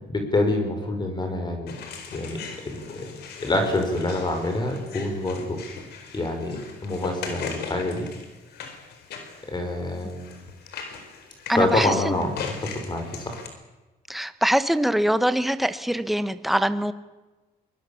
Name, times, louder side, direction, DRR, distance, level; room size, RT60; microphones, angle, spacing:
voice 1, 0.1-1.7 2.1-2.4 2.7-3.1 3.4-5.6 6.1-8.1 9.5-10.3 11.5-12.3 12.6-13.3, left 2 dB, 25° left, 5 dB, 5.2 m, -26 dB
sound 1, 1.7-13.5, left 6 dB, 75° left, 4.5 m, -39 dB
voice 2, 11.5-12.1 14.1-16.9, equal, ahead, 11 dB, 1.2 m, -23 dB
23.0 x 20.5 x 7.2 m, 1.2 s
cardioid pair, 100°, 17 cm